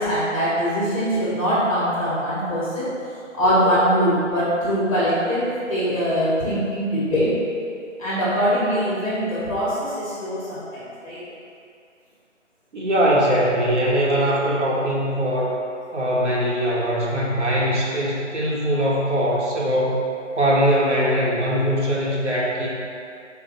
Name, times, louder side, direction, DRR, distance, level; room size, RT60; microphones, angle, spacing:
voice 1, 0.0-2.9 3.3-7.3 8.0-11.2, equal, 30° left, -9 dB, 1.2 m, -22 dB
voice 2, 12.7-15.6 15.9-20.0 20.4-22.7, equal, 65° right, -5 dB, 1.1 m, -21 dB
4.4 x 2.6 x 3.9 m, 2.4 s
figure-of-eight pair, 175°, 38 cm